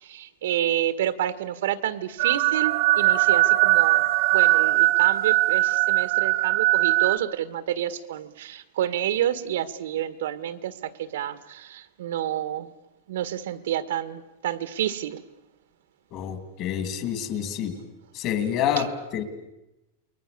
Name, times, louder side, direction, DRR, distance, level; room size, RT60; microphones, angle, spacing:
voice 1, 0.0-4.0 4.3-12.7 13.1-15.2, right 11 dB, 75° right, 13 dB, 1.7 m, -29 dB
sound 1, 2.2-7.2, right 17 dB, 45° right, 1.3 m, -20 dB
voice 2, 16.1-17.7 18.1-19.2, left 9 dB, 30° left, 9 dB, 2.9 m, -28 dB
29.0 x 22.5 x 6.9 m, 0.97 s
supercardioid pair, 170°, 0 cm